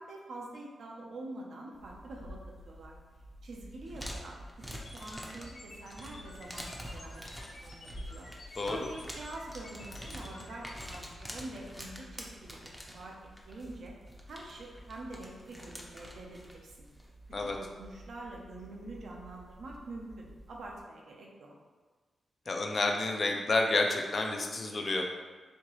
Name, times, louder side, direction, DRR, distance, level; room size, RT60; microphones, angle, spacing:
voice 1, 0.0-2.4 2.6-2.9 3.4-7.2 7.5-8.3 8.7-12.6 12.9-13.1 13.5-13.9 14.3-16.9 17.4-21.5, right 2 dB, 75° right, -1 dB, 0.7 m, -46 dB
sound 1, 1.7-20.8, equal, 5° right, 0.6 m, -47 dB
sound 2, 4.8-11.0, left 2 dB, 85° left, 0.9 m, -52 dB
voice 2, 22.5-25.0, left 2 dB, 50° left, 2 dB, 0.5 m, -29 dB
4.3 x 2.8 x 3.0 m, 1.4 s
cardioid pair, 80°, 0 cm